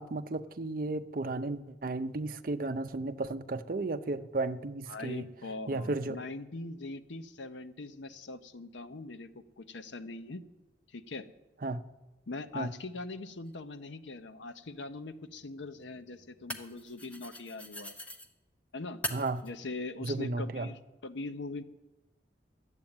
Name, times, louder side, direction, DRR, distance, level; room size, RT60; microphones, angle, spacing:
voice 1, 0.0-5.3 5.7-6.2 11.6-11.8 12.5-12.7 19.1-19.4 20.0-20.7, right 2 dB, 50° right, 9 dB, 0.5 m, -34 dB
voice 2, 4.9-10.4 10.9-11.3 12.3-17.9 18.7-19.0 19.4-21.6, left 3 dB, 80° left, 11 dB, 0.7 m, -42 dB
sound 1, 13.5-13.6 15.2-18.3 19.0-19.5, equal, 5° left, 0.7 m, -42 dB
12.0 x 8.2 x 8.8 m, 1.1 s
head